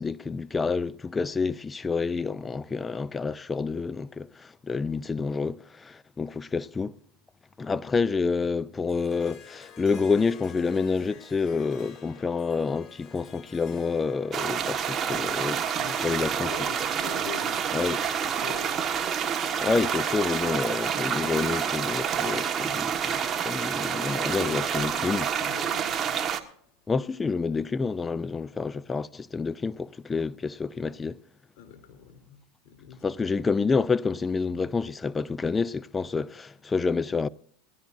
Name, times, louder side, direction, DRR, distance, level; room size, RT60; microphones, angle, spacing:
voice 1, 0.0-6.9 7.6-15.8 16.0-16.5 17.7-18.0 19.5-25.3 26.9-31.2 33.0-37.3, left 4 dB, 15° left, 0.4 m, -28 dB
Harp, 8.9-26.1, left 7 dB, 35° left, 2.6 m, -49 dB
sound 1, 14.3-26.4, right 8 dB, 30° right, 1.4 m, -28 dB
voice 2, 15.8-17.9 18.2-18.9 24.3-26.2 31.6-33.2, left 8 dB, 60° left, 3.4 m, -43 dB
20.5 x 15.0 x 2.6 m
hypercardioid pair, 105°, 0 cm